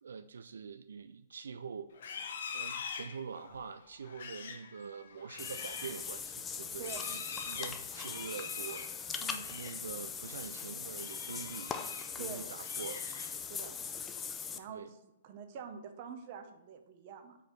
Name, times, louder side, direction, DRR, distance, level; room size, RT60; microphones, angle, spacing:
voice 1, 0.0-1.9 2.5-8.9 9.5-11.7 12.2-13.1 14.7-14.9, right 6 dB, 85° right, 11 dB, 0.3 m, -45 dB
Livestock farm animals working animals, 1.9-9.9 10.2-10.5 10.9-12.2 12.5-13.6, left 6 dB, 60° left, 0.8 m, -45 dB
Water / Bathtub (filling or washing), 5.4-14.6, left 6 dB, 15° left, 0.4 m, -41 dB
voice 2, 9.2-9.5 12.2-12.5 13.5-13.8 14.5-17.4, right 6 dB, 40° right, 7 dB, 0.8 m, -46 dB
5.0 x 4.5 x 5.0 m, 0.90 s
hypercardioid pair, 150°, 0 cm